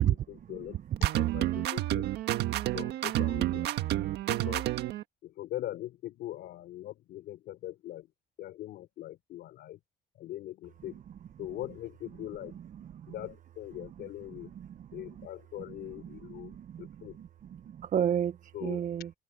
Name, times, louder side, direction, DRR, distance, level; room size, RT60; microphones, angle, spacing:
voice 1, 0.0-0.8 1.1-2.1 2.7-3.7 4.3-4.7 5.2-8.1 8.4-9.8 10.2-11.0 11.4-12.6 13.1-14.6 14.9-17.2 18.5-18.9, left 14 dB, 75° left, 4.1 m, -41 dB
sound 1, 1.0-5.0, right 14 dB, 80° right, 1.6 m, -30 dB
voice 2, 12.8-13.1 14.6-15.1 16.2-19.1, right 10 dB, 50° right, 1.0 m, -32 dB
open air
cardioid pair, 110°, 17 cm